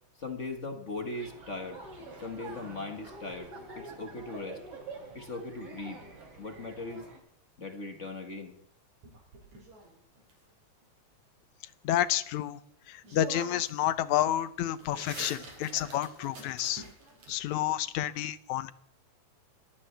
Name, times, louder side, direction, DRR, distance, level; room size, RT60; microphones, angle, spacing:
voice 1, 0.2-1.8 2.2-4.6 5.1-6.0 6.4-7.1 7.6-8.5, left 3 dB, 30° left, 5 dB, 1.5 m, -39 dB
sound 1, 1.1-7.2, right 3 dB, 50° right, 4.6 m, -47 dB
sound 2, 9.0-10.3 12.5-12.6 13.0-13.9 14.2-17.3, right 2 dB, 75° right, 6.3 m, -45 dB
voice 2, 11.8-12.6 12.9-16.8 17.3-18.7, left 12 dB, 80° left, 14 dB, 2.1 m, -30 dB
27.5 x 15.5 x 3.4 m, 0.71 s
omnidirectional pair, 3.3 m